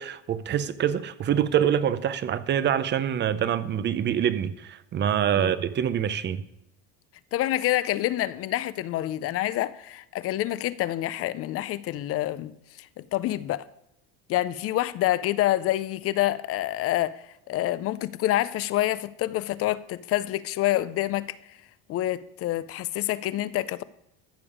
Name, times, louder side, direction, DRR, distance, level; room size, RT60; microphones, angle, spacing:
voice 1, 0.0-6.4, right 9 dB, 30° right, 0.6 m, -25 dB
voice 2, 7.3-12.5 12.8-13.7 14.3-21.5 21.9-23.8, left 14 dB, 45° left, 0.5 m, -27 dB
14.0 x 6.9 x 4.9 m
supercardioid pair, 120°, 34 cm